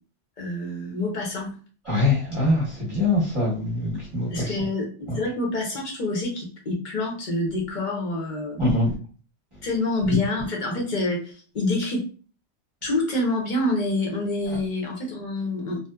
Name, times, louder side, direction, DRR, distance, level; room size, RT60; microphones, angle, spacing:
voice 1, 0.4-1.5 4.3-8.7 9.6-12.0 12.8-15.8, left 2 dB, 45° left, -1 dB, 0.8 m, -27 dB
voice 2, 1.9-4.6 8.6-8.9, left 2 dB, 30° right, -8 dB, 0.8 m, -23 dB
2.7 x 2.1 x 2.2 m, 0.38 s
omnidirectional pair, 1.2 m